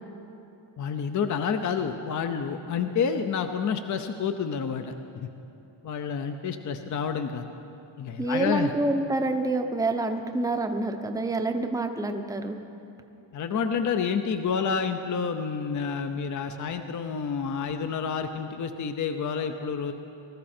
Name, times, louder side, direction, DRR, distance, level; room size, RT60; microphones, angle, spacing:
voice 1, 0.8-5.3 5.8-7.4 8.0-8.7 13.3-19.9, left 6 dB, 35° left, 7 dB, 0.6 m, -29 dB
voice 2, 8.2-12.6, right 2 dB, 5° right, 5 dB, 0.7 m, -27 dB
19.5 x 13.5 x 4.3 m, 2.8 s
cardioid pair, 125°, 50 cm